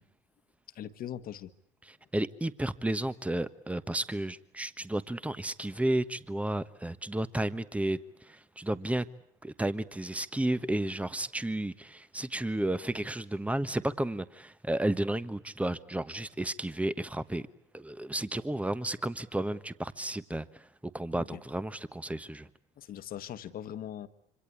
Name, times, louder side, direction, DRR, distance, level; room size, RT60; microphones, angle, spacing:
voice 1, 0.7-1.5 21.1-21.4 22.8-24.1, left 10 dB, 55° left, 1.6 m, -40 dB
voice 2, 2.1-9.1 9.4-17.5 17.7-22.5, right 1 dB, 5° right, 1.3 m, -32 dB
26.5 x 25.5 x 8.4 m
hypercardioid pair, 65°, 18 cm